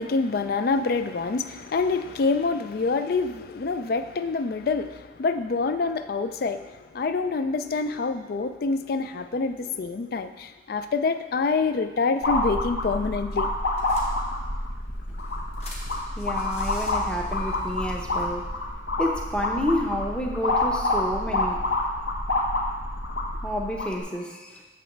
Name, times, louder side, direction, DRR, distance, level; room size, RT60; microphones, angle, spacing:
voice 1, 0.0-13.5, left 4 dB, 50° left, 10 dB, 0.4 m, -26 dB
sound 1, 12.2-24.0, left 2 dB, 75° left, 1.2 m, -27 dB
sound 2, 13.0-13.1 13.3-13.4 13.8-14.6 15.1-18.2, equal, 35° left, 1.2 m, -41 dB
voice 2, 16.2-18.5 19.0-21.7 23.4-24.6, equal, 5° left, 0 dB, 0.7 m, -29 dB
8.8 x 3.1 x 6.5 m, 1.3 s
head